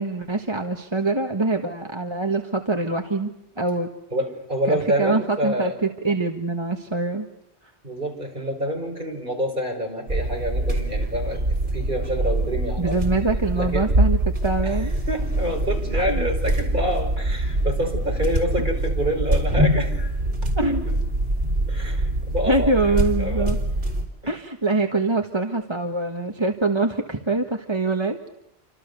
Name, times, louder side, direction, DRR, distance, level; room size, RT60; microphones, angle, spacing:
voice 1, 0.0-3.9 4.7-7.3 12.8-14.9 15.9-16.3 20.6-20.8 22.5-23.6 24.3-28.2, right 3 dB, 25° right, 4 dB, 1.5 m, -24 dB
voice 2, 4.1-5.8 7.8-13.0 13.5-13.9 14.6-20.2 20.6-21.0 21.7-23.5 24.2-24.3, equal, 50° right, 3 dB, 5.3 m, -27 dB
sound 1, 10.1-24.1, right 1 dB, 75° right, 4.0 m, -24 dB
29.5 x 26.0 x 6.8 m, 0.78 s
omnidirectional pair, 1.1 m